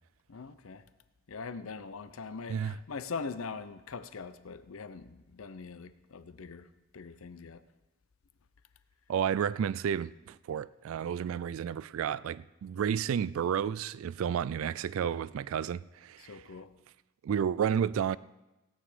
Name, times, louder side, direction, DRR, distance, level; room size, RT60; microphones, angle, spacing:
voice 1, 0.3-0.8 1.3-6.7 6.9-7.6 16.2-16.7, left 4 dB, 85° left, 0.6 m, -42 dB
voice 2, 9.1-16.4 17.2-18.2, right 8 dB, 80° right, 0.3 m, -31 dB
16.5 x 9.2 x 5.0 m
head